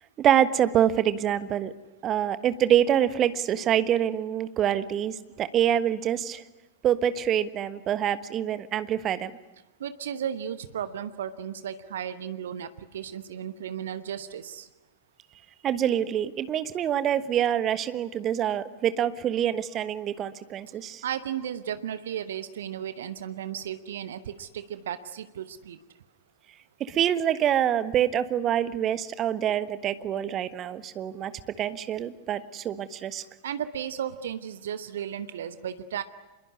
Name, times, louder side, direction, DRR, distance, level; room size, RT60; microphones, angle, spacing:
voice 1, 0.2-1.7 2.0-6.4 6.8-9.3 15.6-21.0 26.9-31.3 31.6-33.2, right 10 dB, 30° right, 12 dB, 1.3 m, -26 dB
voice 2, 9.8-14.7 21.0-25.8 33.4-36.0, right 9 dB, 60° right, 12 dB, 1.1 m, -34 dB
26.0 x 22.0 x 9.6 m, 1.1 s
figure-of-eight pair, 90°, 0 cm